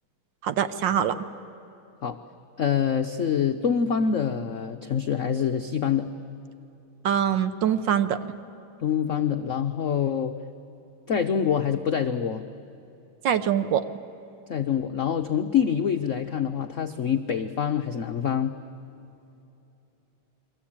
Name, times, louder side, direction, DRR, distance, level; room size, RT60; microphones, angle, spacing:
voice 1, 0.4-1.2 7.0-8.2 13.2-13.8, right 9 dB, 65° right, 12 dB, 1.4 m, -23 dB
voice 2, 2.6-6.1 8.8-10.4 11.1-12.4 14.5-18.5, left 7 dB, 70° left, 6 dB, 0.7 m, -25 dB
28.5 x 22.5 x 8.7 m, 2.9 s
omnidirectional pair, 2.3 m